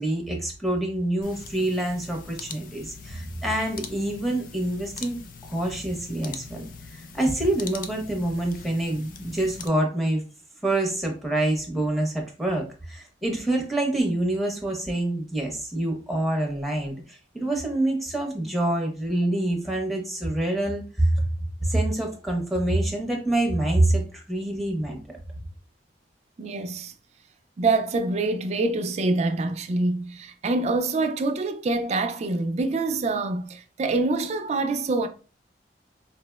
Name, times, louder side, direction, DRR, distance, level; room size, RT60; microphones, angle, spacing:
voice 1, 0.0-5.2 5.5-6.6 6.9-10.2 10.6-21.2 21.6-25.0, right 1 dB, ahead, 0.6 m, -26 dB
sound 1, 1.2-9.7, left 5 dB, 50° left, 0.3 m, -42 dB
voice 2, 26.4-26.9 27.6-35.1, right 3 dB, 35° right, 0.3 m, -25 dB
4.2 x 2.0 x 2.2 m
head